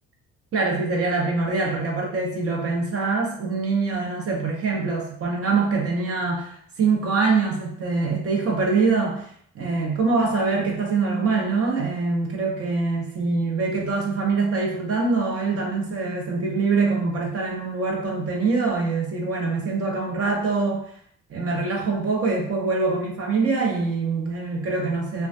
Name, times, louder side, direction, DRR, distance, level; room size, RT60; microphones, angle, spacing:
voice 1, 0.5-9.3 9.5-20.8 21.3-25.3, right 4 dB, 50° right, -1 dB, 0.7 m, -24 dB
2.2 x 2.2 x 2.5 m, 0.64 s
cardioid pair, 90°, 30 cm